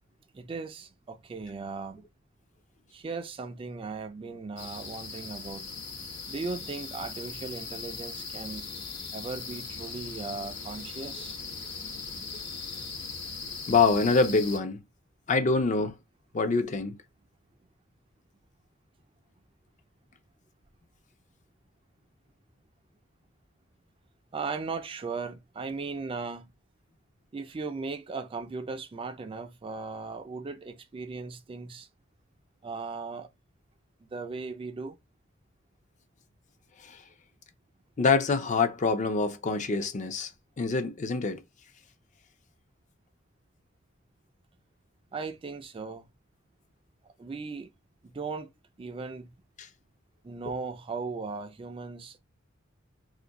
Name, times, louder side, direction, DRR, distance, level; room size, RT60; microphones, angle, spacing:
voice 1, 0.3-2.0 2.9-5.6 6.3-8.7 9.1-11.4 24.3-26.5 27.3-31.9 32.6-33.3 34.1-35.0 45.1-46.1 47.2-47.7 48.0-48.5 48.8-49.3 50.2-52.2, right 4 dB, 25° right, 0.3 m, -37 dB
sound 1, 4.6-14.6, left 4 dB, 60° left, 1.0 m, -39 dB
voice 2, 13.7-14.8 15.3-16.0 16.3-17.0 36.8-37.0 38.0-40.3 40.6-41.4 49.6-49.7, left 4 dB, 40° left, 0.5 m, -25 dB
2.6 x 2.5 x 3.8 m
head